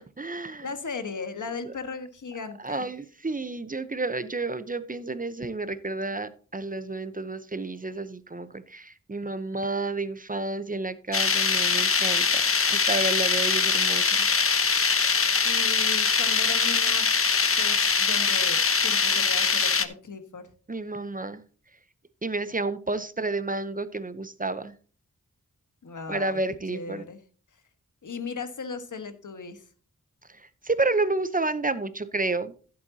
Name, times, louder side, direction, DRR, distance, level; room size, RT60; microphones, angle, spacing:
voice 1, 0.0-0.7 1.6-1.7 2.6-12.4 12.7-14.3 20.7-21.4 22.2-24.7 26.1-27.0 30.3-32.7, right 3 dB, 25° right, 13 dB, 0.8 m, -30 dB
voice 2, 0.6-2.9 15.4-17.1 17.6-20.4 25.8-26.4 26.7-27.2 28.0-29.6, left 5 dB, 75° left, 9 dB, 1.5 m, -37 dB
sound 1, 11.1-19.9, left 5 dB, 45° left, 0.9 m, -23 dB
15.0 x 7.8 x 2.8 m, 0.40 s
wide cardioid pair, 75°, 31 cm